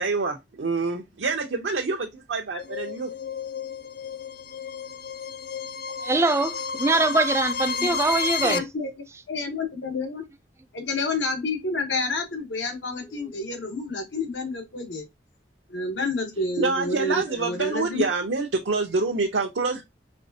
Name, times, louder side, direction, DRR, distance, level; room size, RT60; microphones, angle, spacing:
voice 1, 0.0-3.1 16.6-19.8, right 3 dB, 85° right, 0.6 m, -26 dB
sound 1, 2.6-8.6, left 5 dB, 55° left, 0.4 m, -31 dB
voice 2, 6.0-8.6, right 3 dB, 15° right, 0.3 m, -23 dB
voice 3, 7.6-8.0 8.4-8.9 9.3-10.2 10.7-15.0 15.7-18.0, left 3 dB, 90° left, 1.1 m, -29 dB
4.3 x 3.3 x 2.7 m
head